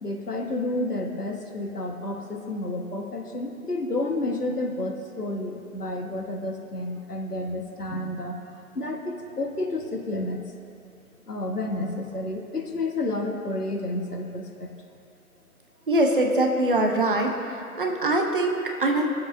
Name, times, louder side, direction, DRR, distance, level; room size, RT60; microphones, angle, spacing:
voice 1, 0.0-8.4 8.7-10.5 11.3-14.7, left 2 dB, 90° left, 2 dB, 1.5 m, -30 dB
voice 2, 15.9-17.3 17.8-19.1, right 2 dB, 35° right, 2 dB, 0.9 m, -22 dB
21.5 x 7.5 x 2.7 m, 2.7 s
figure-of-eight pair, 150°, 45 cm